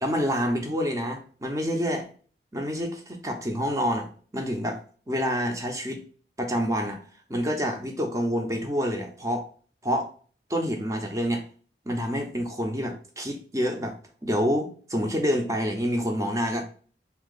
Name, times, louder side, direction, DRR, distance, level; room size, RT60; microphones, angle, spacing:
voice 1, 0.0-2.1 2.5-4.8 5.1-6.0 6.4-7.0 7.3-9.5 9.8-10.1 10.5-11.4 11.9-14.0 14.2-16.6, equal, 20° right, 3 dB, 0.7 m, -27 dB
3.6 x 2.9 x 3.9 m, 0.42 s
head